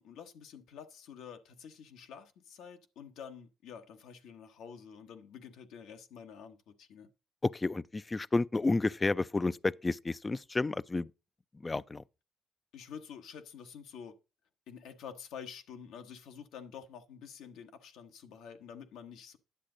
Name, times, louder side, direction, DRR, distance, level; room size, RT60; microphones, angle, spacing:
voice 1, 0.0-7.1 12.7-14.2 14.7-19.4, left 7 dB, 85° left, 1.1 m, -48 dB
voice 2, 7.5-11.1 11.6-12.0, left 3 dB, 20° left, 0.4 m, -31 dB
10.0 x 7.7 x 3.8 m
cardioid pair, 90°, 0 cm